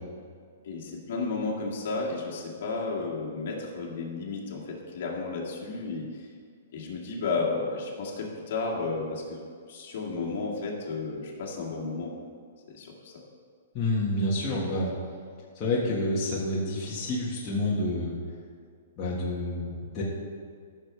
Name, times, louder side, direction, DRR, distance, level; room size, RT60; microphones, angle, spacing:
voice 1, 0.6-6.3 6.7-9.4 9.7-12.1 12.7-13.1, left 3 dB, 55° left, -3 dB, 2.0 m, -33 dB
voice 2, 13.7-14.9 15.5-18.1 19.0-20.0, left 1 dB, 25° left, -7 dB, 1.6 m, -28 dB
15.0 x 6.6 x 3.4 m, 2.1 s
hypercardioid pair, 165°, 0 cm